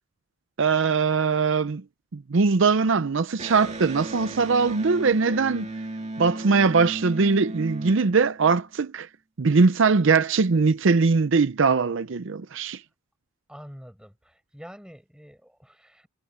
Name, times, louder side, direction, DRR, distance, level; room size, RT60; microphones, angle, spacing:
voice 1, 0.6-1.8 2.1-5.8 6.2-9.1 9.4-12.8, right 4 dB, 65° right, 0.6 m, -21 dB
Electric guitar, 3.4-8.8, right 2 dB, 35° right, 2.1 m, -35 dB
voice 2, 13.5-16.1, equal, 5° right, 6.4 m, -46 dB
head